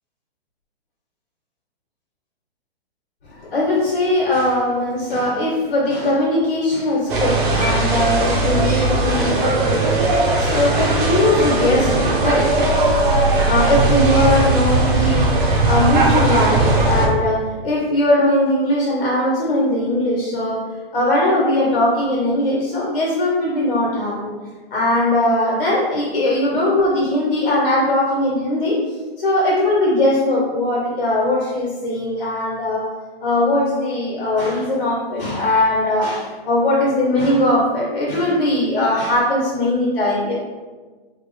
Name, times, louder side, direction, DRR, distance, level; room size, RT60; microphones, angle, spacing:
voice 1, 3.3-12.6 13.4-15.4 15.6-24.3 24.7-28.8 29.2-32.9 33.2-40.3, left 1 dB, 65° left, -5 dB, 1.2 m, -20 dB
sound 1, 7.1-17.1, right 2 dB, 55° right, 0.8 m, -18 dB
3.2 x 2.0 x 3.3 m, 1.3 s
hypercardioid pair, 145°, 31 cm